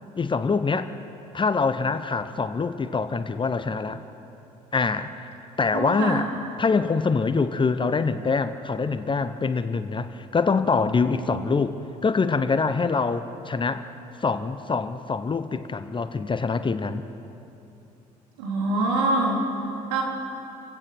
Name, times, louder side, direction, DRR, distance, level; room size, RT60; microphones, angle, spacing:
voice 1, 0.2-0.9 1.3-4.0 4.7-5.3 5.6-6.2 6.6-11.8 12.0-13.8 14.2-17.0, left 4 dB, 25° left, 11 dB, 1.0 m, -24 dB
voice 2, 5.7-6.2 18.4-19.5 19.9-20.0, right 2 dB, 70° right, -1 dB, 3.8 m, -24 dB
29.0 x 16.5 x 6.1 m, 2.9 s
figure-of-eight pair, 55°, 20 cm